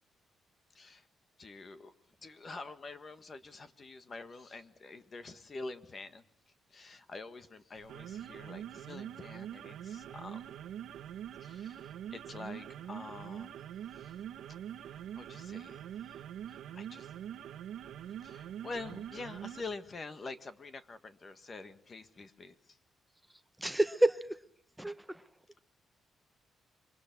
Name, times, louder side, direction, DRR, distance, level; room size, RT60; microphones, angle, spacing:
voice 1, 0.7-1.1 1.4-1.9 2.2-6.2 6.7-10.4 11.4-13.6 14.0-14.1 14.5-14.6 14.9-17.1 18.2-22.5, left 3 dB, 30° left, 1.5 m, -46 dB
sound 1, 7.8-19.7, right 10 dB, 85° right, 1.0 m, -44 dB
voice 2, 23.6-24.2 24.8-25.2, right 1 dB, 5° right, 0.9 m, -28 dB
27.0 x 24.0 x 6.0 m
cardioid pair, 150°, 0 cm